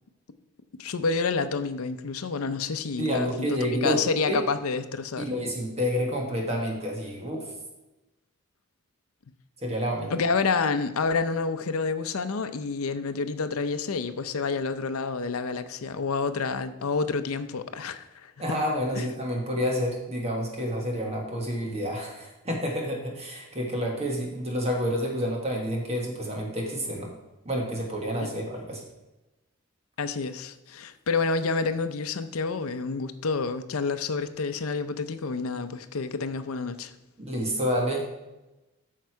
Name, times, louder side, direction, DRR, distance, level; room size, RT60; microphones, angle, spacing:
voice 1, 0.8-5.5 10.1-18.3 19.0-19.1 28.2-28.3 30.0-36.9, left 4 dB, 80° left, 9 dB, 0.6 m, -29 dB
voice 2, 3.0-4.0 4.3-4.4 5.2-7.5 9.6-10.1 18.4-27.1 27.4-28.8 37.2-38.1, equal, 30° right, 0 dB, 1.4 m, -29 dB
9.3 x 6.5 x 4.6 m, 1.0 s
head